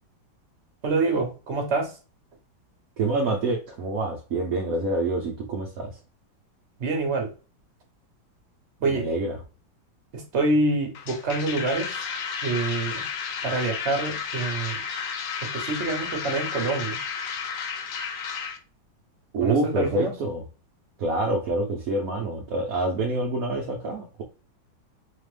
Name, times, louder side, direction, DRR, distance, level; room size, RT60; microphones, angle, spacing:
voice 1, 0.8-1.9 6.8-7.3 8.8-9.1 10.1-11.9 12.4-13.0 13.4-14.8 15.4-17.0 19.4-20.1, right 3 dB, 40° right, 3 dB, 1.3 m, -26 dB
voice 2, 3.0-5.9 8.9-9.4 19.3-20.4 21.0-24.2, right 2 dB, 60° right, 0 dB, 1.0 m, -26 dB
sound 1, 10.9-18.6, left 6 dB, 75° left, 0.7 m, -32 dB
4.4 x 2.4 x 3.3 m, 0.34 s
omnidirectional pair, 2.1 m